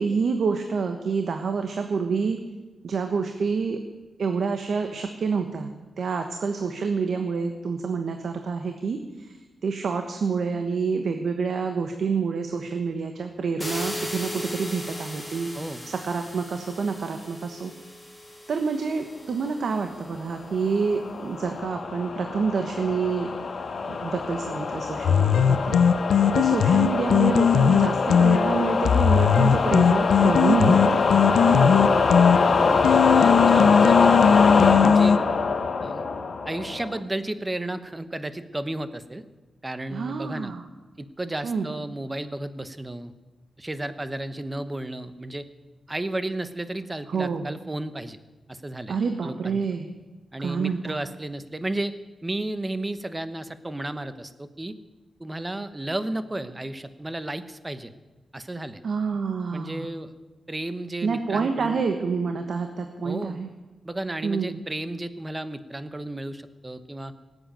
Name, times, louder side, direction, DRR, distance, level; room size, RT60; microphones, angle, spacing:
voice 1, 0.0-2.4 2.8-3.8 4.2-5.7 6.0-9.4 9.6-15.5 15.9-17.7 18.5-23.3 23.9-25.8 26.3-31.0 31.4-32.0 39.9-40.6 41.4-41.7 47.1-47.5 48.9-49.9 50.4-51.0 58.8-59.9 61.0-63.5 64.2-64.6, right 5 dB, 65° right, 6 dB, 1.2 m, -27 dB
sound 1, 13.6-20.4, left 1 dB, ahead, 4.0 m, -38 dB
sound 2, 20.5-37.0, left 4 dB, 55° left, 1.3 m, -23 dB
sound 3, 25.0-35.2, left 7 dB, 90° left, 0.5 m, -20 dB
voice 2, 32.4-34.3 34.8-35.2 35.8-36.1 36.5-39.2 39.6-40.5 41.0-43.1 43.6-45.5 45.9-48.2 48.5-49.0 49.2-49.6 50.3-51.9 52.2-54.8 55.2-57.9 58.3-58.8 59.5-60.1 60.5-61.8 63.0-63.4 63.8-67.1, right 1 dB, 20° right, 12 dB, 1.0 m, -33 dB
18.0 x 7.9 x 8.9 m, 1.2 s
cardioid pair, 95°, 0 cm